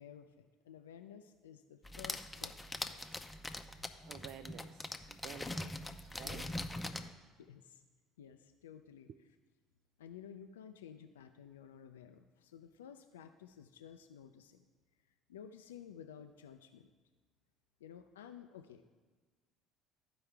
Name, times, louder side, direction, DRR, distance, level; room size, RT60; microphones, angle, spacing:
voice 1, 0.0-3.3 6.2-6.6 7.0-7.8 8.2-9.1 10.0-14.6 15.3-16.9 17.8-18.9, left 8 dB, 90° left, 6 dB, 0.3 m, -54 dB
sound 1, 1.8-7.1, left 1 dB, 15° left, 0.6 m, -42 dB
voice 2, 4.1-6.5 9.1-9.2, right 10 dB, 60° right, 10 dB, 0.3 m, -52 dB
12.5 x 4.7 x 3.3 m, 1.4 s
hypercardioid pair, 65°, 0 cm